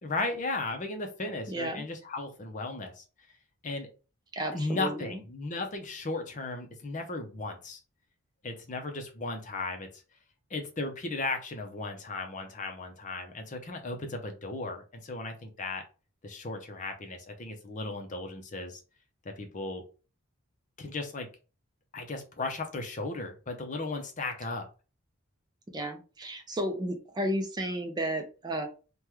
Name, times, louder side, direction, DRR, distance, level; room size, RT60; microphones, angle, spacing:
voice 1, 0.0-3.0 3.6-3.9 4.5-7.8 8.4-9.9 10.5-15.8 16.2-18.8 19.2-19.8 20.8-21.3 21.9-24.7, left 3 dB, 35° left, 5 dB, 0.6 m, -36 dB
voice 2, 1.5-1.8 4.3-5.2 25.7-28.7, right 1 dB, 20° right, 4 dB, 0.5 m, -33 dB
3.4 x 2.2 x 3.0 m, 0.34 s
head